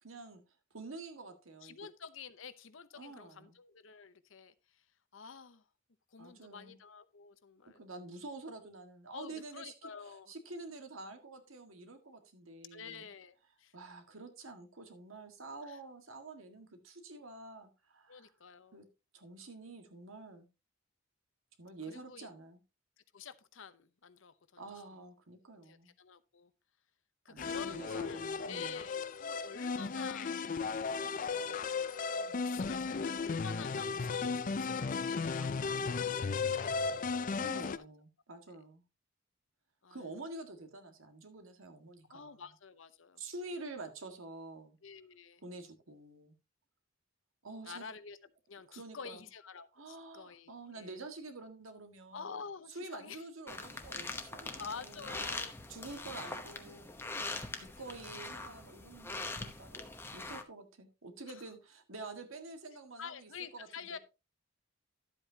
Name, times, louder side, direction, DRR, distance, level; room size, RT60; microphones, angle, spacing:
voice 1, 0.0-0.4 0.7-1.8 2.9-3.6 6.2-6.8 7.8-13.1 13.7-18.3 18.7-18.9 19.1-20.5 21.6-22.6 24.6-25.9 27.3-28.8 37.4-38.8 39.9-42.5 43.2-44.8 45.4-46.3 47.4-47.8 48.7-49.2 49.7-52.4 52.7-55.1 55.7-57.0 57.6-64.0, right 2 dB, 80° right, 1.8 m, -48 dB
voice 2, 1.6-4.8 5.1-5.6 6.1-7.8 9.1-10.3 12.7-13.7 15.6-15.8 18.1-18.8 21.9-22.3 23.1-24.7 25.7-26.5 27.2-30.4 32.1-37.3 37.7-37.8 38.5-38.6 39.8-40.0 42.1-43.2 44.8-45.4 47.6-48.2 48.5-51.0 52.1-53.2 54.6-55.5 57.8-58.0 61.3-61.4 63.0-64.0, left 6 dB, 70° left, 0.8 m, -49 dB
sound 1, 27.4-37.8, left 5 dB, 40° left, 0.4 m, -35 dB
sound 2, 53.5-60.4, left 2 dB, 10° left, 0.9 m, -42 dB
11.5 x 8.1 x 2.8 m
head